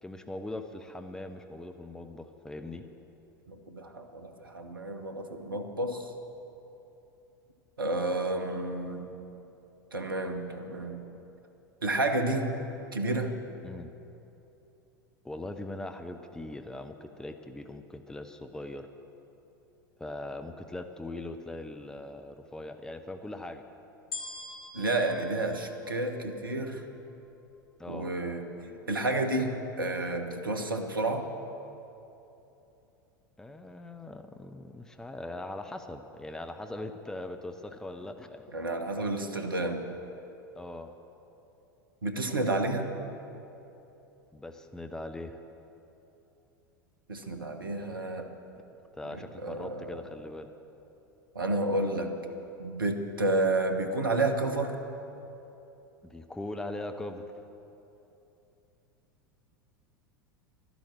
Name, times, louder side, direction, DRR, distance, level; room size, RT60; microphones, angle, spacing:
voice 1, 0.0-2.9 13.6-13.9 15.2-18.9 20.0-23.6 27.8-28.1 33.4-38.5 40.6-40.9 44.3-45.4 49.0-50.5 56.0-57.2, left 2 dB, 5° left, 7 dB, 0.6 m, -40 dB
voice 2, 3.5-6.1 7.8-9.1 9.9-11.0 11.8-12.5 12.9-13.3 24.7-26.8 27.9-31.2 38.5-39.8 42.0-42.9 47.1-48.3 49.1-50.1 51.3-52.1 52.6-54.8, right 2 dB, 80° right, 5 dB, 1.1 m, -30 dB
sound 1, 24.1-26.5 27.1-27.2, left 3 dB, 75° left, 2.2 m, -43 dB
12.0 x 11.0 x 7.5 m, 2.9 s
figure-of-eight pair, 80°, 11 cm